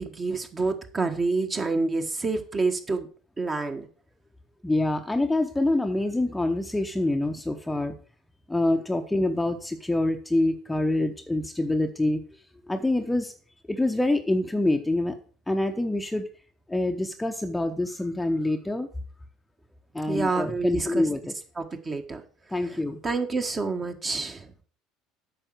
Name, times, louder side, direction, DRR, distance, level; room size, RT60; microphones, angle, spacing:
voice 1, 0.0-3.1 3.4-3.9 20.1-21.1 21.6-22.2 23.0-24.5, right 3 dB, 25° right, 6 dB, 1.5 m, -28 dB
voice 2, 4.6-7.9 8.5-12.2 12.7-13.3 13.7-15.2 15.5-16.3 16.7-18.9 19.9-21.3 22.5-23.0, left 2 dB, 10° left, 6 dB, 0.8 m, -26 dB
8.9 x 5.8 x 6.3 m, 0.42 s
figure-of-eight pair, 65°, 0 cm